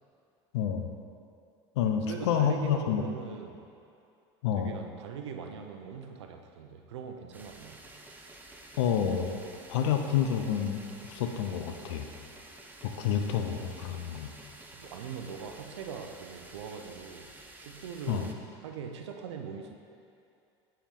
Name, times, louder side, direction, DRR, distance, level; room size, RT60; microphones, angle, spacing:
voice 1, 0.5-0.9 1.8-3.0 4.4-4.7 8.8-9.4 9.7-12.1 12.8-14.3 18.1-18.3, left 8 dB, 80° left, 5 dB, 0.7 m, -29 dB
voice 2, 2.1-3.6 4.6-7.8 13.5-13.9 14.7-17.3 17.6-18.4 18.6-19.7, right 6 dB, 90° right, 5 dB, 0.6 m, -41 dB
sound 1, 7.3-18.3, right 2 dB, 15° right, 0.7 m, -51 dB
9.9 x 4.7 x 3.7 m, 2.6 s
hypercardioid pair, 95°, 14 cm